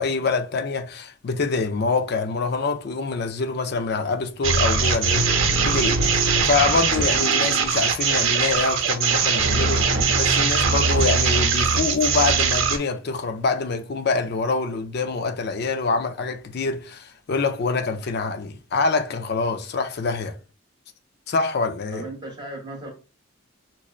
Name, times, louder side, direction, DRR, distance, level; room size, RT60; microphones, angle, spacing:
voice 1, 0.0-5.3 5.6-20.4 21.3-22.1, left 4 dB, 55° left, 0.4 m, -25 dB
sound 1, 4.4-12.8, right 5 dB, 80° right, 0.8 m, -21 dB
voice 2, 21.9-22.9, right 1 dB, 20° right, 0.9 m, -35 dB
6.0 x 2.0 x 2.4 m
head